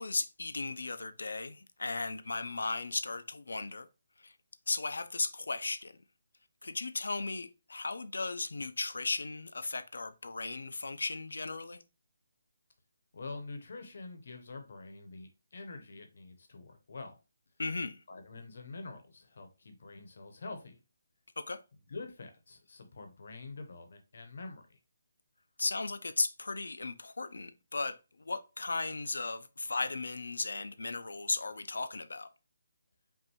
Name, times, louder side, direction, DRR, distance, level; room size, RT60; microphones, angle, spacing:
voice 1, 0.0-3.9 4.2-4.3 4.7-5.9 6.6-11.8 17.6-18.0 21.4-21.6 25.6-32.3, left 3 dB, 90° left, 0.6 m, -36 dB
voice 2, 13.1-17.1 18.1-20.8 21.9-24.8, left 3 dB, 45° left, 0.8 m, -46 dB
5.3 x 2.6 x 3.0 m
hypercardioid pair, 180°, 0 cm